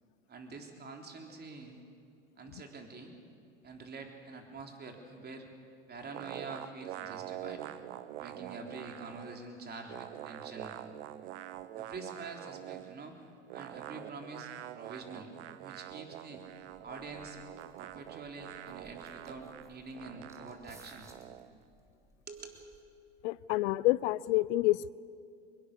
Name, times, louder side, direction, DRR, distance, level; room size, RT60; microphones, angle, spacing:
voice 1, 0.3-1.8 2.4-3.1 3.6-5.5 5.9-7.7 8.2-10.8 11.7-13.2 13.5-15.3 15.6-16.4 16.8-17.4 17.8-21.1 22.3-22.7, right 3 dB, 25° right, 3 dB, 3.7 m, -46 dB
sound 1, 6.1-9.4 9.7-13.0 13.5-21.5, right 13 dB, 70° right, 1.1 m, -45 dB
sound 2, 16.6-23.1, right 1 dB, 10° right, 3.3 m, -62 dB
voice 2, 23.2-24.9, left 18 dB, 65° left, 21 dB, 0.7 m, -28 dB
24.0 x 21.5 x 6.8 m, 2.4 s
hypercardioid pair, 95°, 36 cm